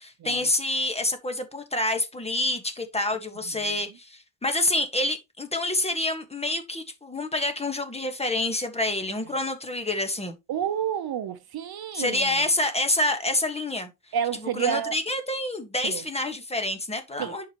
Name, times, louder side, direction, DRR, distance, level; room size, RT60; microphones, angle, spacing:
voice 1, 0.0-10.4 11.9-13.9 14.5-17.5, left 1 dB, 15° left, 1.5 m, -27 dB
voice 2, 10.5-12.3 14.1-15.0 15.8-16.0 17.2-17.5, right 9 dB, 55° right, 0.9 m, -29 dB
10.5 x 4.8 x 3.0 m
cardioid pair, 155°, 44 cm